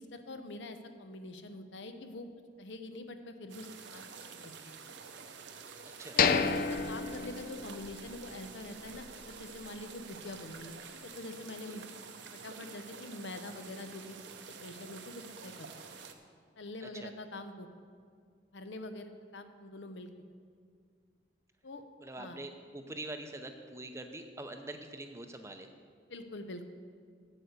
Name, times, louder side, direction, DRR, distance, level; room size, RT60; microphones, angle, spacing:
voice 1, 0.0-2.3 2.6-4.0 4.3-4.7 6.1-11.8 12.3-14.2 14.6-15.7 16.6-17.7 18.5-20.1 21.6-21.8 22.2-22.4 26.1-26.7, left 2 dB, 75° left, 8 dB, 0.8 m, -45 dB
sound 1, 3.5-16.1, right 5 dB, 75° right, 0.8 m, -49 dB
sound 2, 6.2-8.1 8.4-8.5 9.0-9.2, left 6 dB, 50° left, 0.4 m, -30 dB
voice 2, 22.0-25.7, right 2 dB, 15° right, 6 dB, 0.6 m, -44 dB
8.5 x 8.0 x 6.6 m, 2.1 s
head